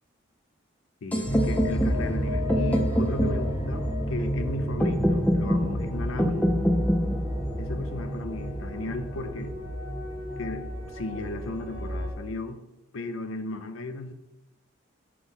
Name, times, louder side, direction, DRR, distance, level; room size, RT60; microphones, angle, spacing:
voice 1, 1.0-6.5 7.6-9.5 10.4-12.6 12.9-14.1, left 2 dB, 80° left, 9 dB, 0.6 m, -35 dB
sound 1, 1.1-9.0, equal, 5° left, 0.5 m, -27 dB
sound 2, 1.2-12.1, equal, 25° left, 1.5 m, -30 dB
6.1 x 3.0 x 5.5 m, 0.97 s
head